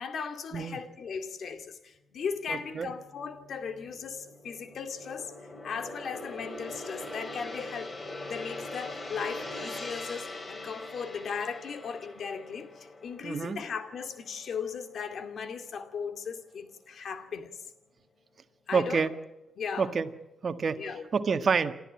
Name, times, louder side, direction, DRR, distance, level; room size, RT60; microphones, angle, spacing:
voice 1, 0.0-5.3 5.6-7.9 8.2-17.5 18.7-19.1 19.6-19.9 20.7-21.0, left 6 dB, 70° left, 2.3 m, -37 dB
voice 2, 2.5-2.9 13.2-13.6 18.7-19.1 19.8-20.1 20.4-21.7, right 5 dB, 50° right, 1.5 m, -28 dB
Gong, 2.6-15.1 15.4-15.7, left 2 dB, 30° left, 3.3 m, -42 dB
28.5 x 13.5 x 8.7 m
cardioid pair, 85°, 0 cm